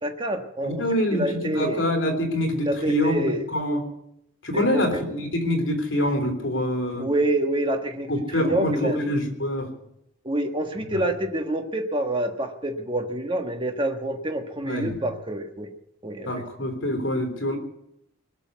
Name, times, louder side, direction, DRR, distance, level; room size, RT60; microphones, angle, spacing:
voice 1, 0.0-1.8 2.6-3.4 4.5-5.0 7.0-8.1 8.4-9.0 10.2-15.7 16.0-16.3, right 1 dB, 25° right, 4 dB, 1.4 m, -27 dB
voice 2, 0.6-3.8 4.4-7.1 8.1-9.7 10.9-11.0 14.6-15.0 16.3-17.6, left 1 dB, 65° left, 4 dB, 3.5 m, -25 dB
21.0 x 7.0 x 9.4 m, 0.79 s
head